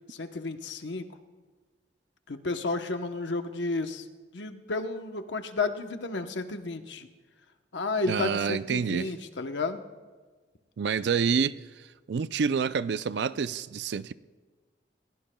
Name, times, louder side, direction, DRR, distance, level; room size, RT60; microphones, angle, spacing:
voice 1, 0.1-1.0 2.3-4.0 4.3-7.1 7.7-9.8, left 3 dB, 85° left, 0.9 m, -32 dB
voice 2, 8.1-9.1 10.8-11.6 12.1-14.1, right 6 dB, 75° right, 0.4 m, -27 dB
29.5 x 16.5 x 2.3 m
head